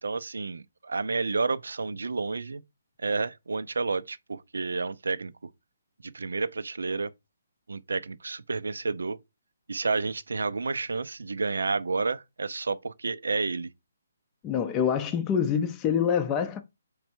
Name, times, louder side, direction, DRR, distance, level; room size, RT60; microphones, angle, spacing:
voice 1, 0.0-2.6 3.0-5.3 6.0-7.1 7.7-9.2 9.7-13.7, right 4 dB, 85° right, 0.4 m, -30 dB
voice 2, 14.4-16.6, left 8 dB, 20° left, 0.4 m, -26 dB
3.3 x 3.2 x 4.4 m
hypercardioid pair, 155°, 0 cm